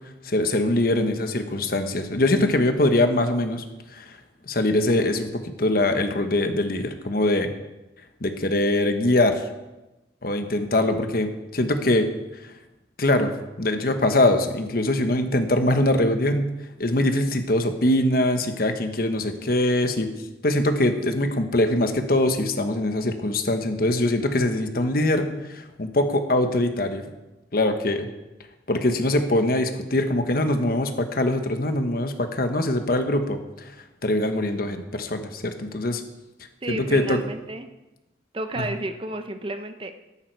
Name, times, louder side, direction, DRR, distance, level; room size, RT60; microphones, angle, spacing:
voice 1, 0.2-3.6 3.9-4.2 4.5-7.5 8.2-9.5 10.2-12.1 12.4-12.5 13.0-13.3 13.6-16.5 16.8-20.1 20.4-27.0 27.5-28.1 28.7-33.7 34.0-36.0 36.7-37.2 38.6-38.7, left 1 dB, 55° left, 7 dB, 1.2 m, -23 dB
voice 2, 36.6-37.7 38.3-40.0, right 1 dB, 30° right, 8 dB, 0.7 m, -32 dB
13.5 x 11.5 x 4.7 m, 1.0 s
head